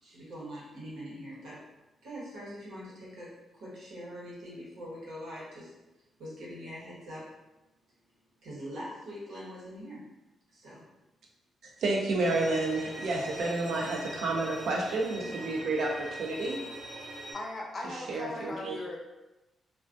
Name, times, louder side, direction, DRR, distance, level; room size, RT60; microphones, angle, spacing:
voice 1, 0.0-1.6 2.0-5.7 6.2-7.2 8.4-10.0 10.5-10.9, equal, 90° right, -6 dB, 1.0 m, -43 dB
voice 2, 11.8-16.6 18.1-18.8, right 2 dB, 70° right, -1 dB, 0.5 m, -30 dB
Bowed string instrument, 12.3-17.3, right 1 dB, 35° right, 0.9 m, -42 dB
voice 3, 17.3-19.0, left 2 dB, 30° left, 0 dB, 0.4 m, -38 dB
2.2 x 2.2 x 2.5 m, 1.0 s
cardioid pair, 135°, 0 cm